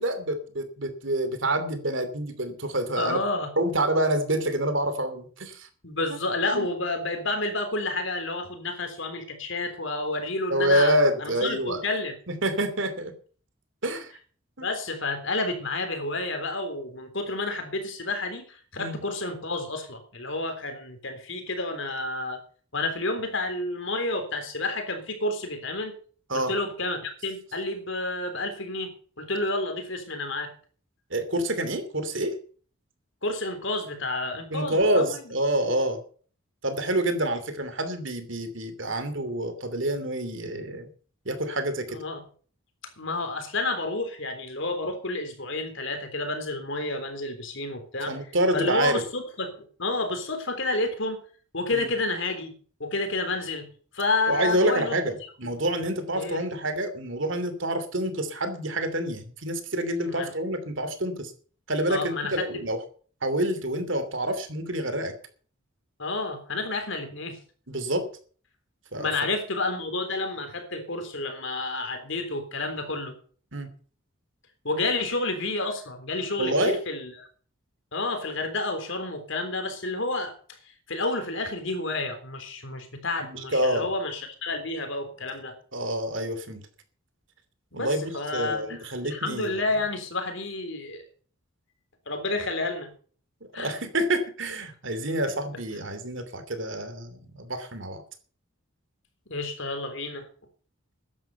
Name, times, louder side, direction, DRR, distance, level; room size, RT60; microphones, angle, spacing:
voice 1, 0.0-3.2 3.6-5.7 6.1-6.2 6.5-6.7 10.5-11.8 12.4-13.1 13.8-14.1 14.6-14.7 18.8-19.0 26.3-26.5 31.1-32.3 34.5-36.0 36.6-40.9 41.2-42.0 48.1-49.0 51.7-51.9 54.3-61.3 61.7-62.8 63.2-65.1 67.7-68.0 68.9-69.1 73.5-73.7 76.4-76.8 83.3-83.9 85.7-86.6 87.7-89.5 93.6-98.0, right 1 dB, 60° right, 10 dB, 2.8 m, -27 dB
voice 2, 3.0-3.5 5.8-12.2 14.6-22.4 22.7-25.9 26.3-30.5 33.2-35.3 41.9-42.2 43.0-48.2 48.5-51.2 51.5-52.5 52.8-53.7 53.9-55.5 56.1-56.4 60.0-60.3 61.9-62.6 66.0-67.4 69.0-73.1 74.6-77.3 77.9-80.4 80.9-85.6 87.7-91.0 92.1-92.9 93.5-93.8 99.3-100.3, left 2 dB, 60° left, 7 dB, 3.6 m, -30 dB
14.0 x 11.0 x 5.6 m, 0.43 s
head